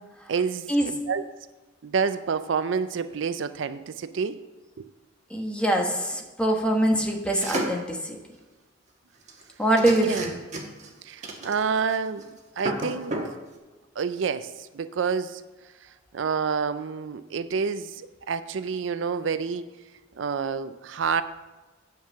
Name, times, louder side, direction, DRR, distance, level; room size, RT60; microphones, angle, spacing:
voice 1, 0.3-1.3 1.8-4.4 4.8-4.9 9.9-10.3 11.0-12.3 12.6-13.1 14.0-15.4 16.1-19.7 20.2-21.2, right 5 dB, 75° right, 13 dB, 0.4 m, -28 dB
voice 2, 5.3-8.2 9.6-10.3, right 1 dB, 5° left, 2 dB, 1.2 m, -24 dB
sound 1, 7.3-7.9 9.3-9.4 9.8-10.9 11.2-11.9 12.2-12.3 12.6-13.3, right 1 dB, 40° right, 1.4 m, -31 dB
8.9 x 5.4 x 7.1 m, 1.2 s
head